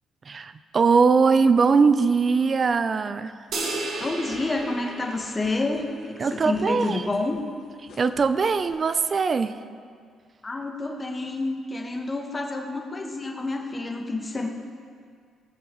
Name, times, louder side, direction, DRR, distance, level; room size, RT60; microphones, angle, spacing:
voice 1, 0.3-3.3 6.2-7.0 8.0-9.5, right 5 dB, 40° right, 12 dB, 0.5 m, -21 dB
sound 1, 3.5-4.9 5.1-8.7, left 5 dB, 70° left, 1.7 m, -49 dB
sound 2, 3.5-6.1, right 2 dB, 70° right, 1.5 m, -33 dB
voice 2, 4.0-7.4 10.4-14.5, left 2 dB, 25° left, 1 dB, 1.4 m, -29 dB
18.5 x 7.1 x 3.1 m, 2.1 s
cardioid pair, 90°, 0 cm